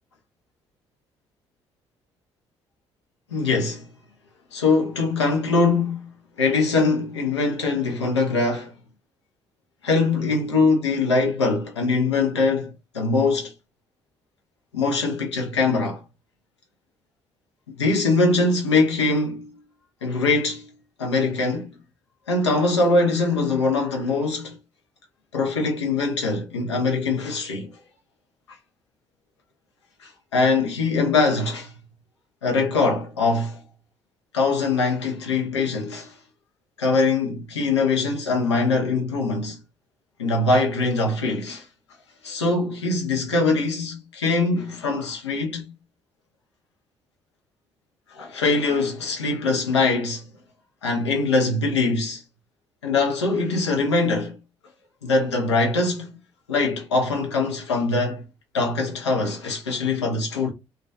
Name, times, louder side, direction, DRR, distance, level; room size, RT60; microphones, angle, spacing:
voice 1, 3.3-3.9 4.5-6.1 6.4-8.7 9.8-13.5 14.7-16.0 17.8-19.5 20.0-20.7 21.0-21.7 22.3-24.6 25.3-27.7 30.0-31.7 32.4-33.6 34.3-36.1 36.8-39.6 40.2-41.6 42.2-45.6 48.1-50.3 50.8-52.2 52.8-54.4 55.0-56.2 56.5-58.2 58.5-60.5, left 3 dB, 85° left, 0.5 m, -22 dB
2.3 x 2.2 x 2.4 m
figure-of-eight pair, 45°, 14 cm